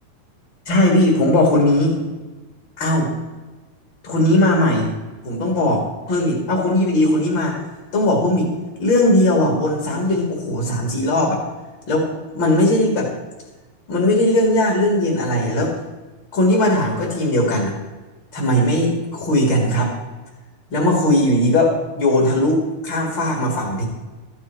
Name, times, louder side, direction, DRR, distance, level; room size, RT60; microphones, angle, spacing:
voice 1, 0.7-1.9 2.8-3.1 4.0-4.9 5.2-7.6 7.9-8.5 8.8-11.4 11.9-13.1 13.9-15.7 16.3-17.7 18.3-19.9 20.7-23.8, left 1 dB, 35° left, 0 dB, 2.5 m, -18 dB
14.0 x 10.0 x 4.6 m, 1.2 s
omnidirectional pair, 4.3 m